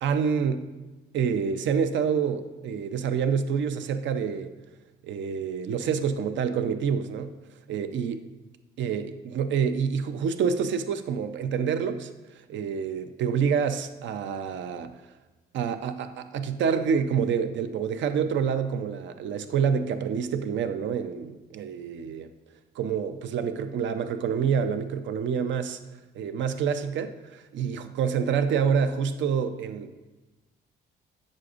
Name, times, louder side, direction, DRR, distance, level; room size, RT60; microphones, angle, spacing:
voice 1, 0.0-0.7 1.1-4.5 5.0-7.3 7.7-8.2 8.8-12.1 12.5-14.9 15.5-22.3 22.8-25.8 26.1-29.9, right 7 dB, 70° right, 9 dB, 0.6 m, -27 dB
8.4 x 6.4 x 2.5 m, 1.1 s
cardioid pair, 90°, 20 cm